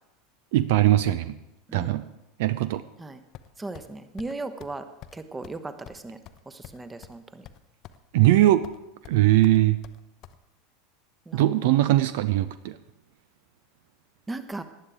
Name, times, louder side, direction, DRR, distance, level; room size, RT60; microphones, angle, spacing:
voice 1, 0.5-1.4 1.7-2.1 2.4-2.8 8.1-8.7 9.1-9.8 11.3-12.8, right 15 dB, 55° right, 14 dB, 0.5 m, -20 dB
voice 2, 1.7-2.0 3.0-3.2 3.6-6.2 6.5-7.5 11.3-11.8 14.3-14.6, right 2 dB, 10° right, 10 dB, 1.1 m, -37 dB
sound 1, 3.3-3.9 4.2-4.3 4.6-4.8 5.0-5.2 5.4-5.6 5.9-7.2 7.4-8.0 8.2-8.8 9.0-10.4, left 11 dB, 40° left, 0.7 m, -46 dB
18.5 x 11.0 x 3.6 m, 0.95 s
figure-of-eight pair, 80°, 0 cm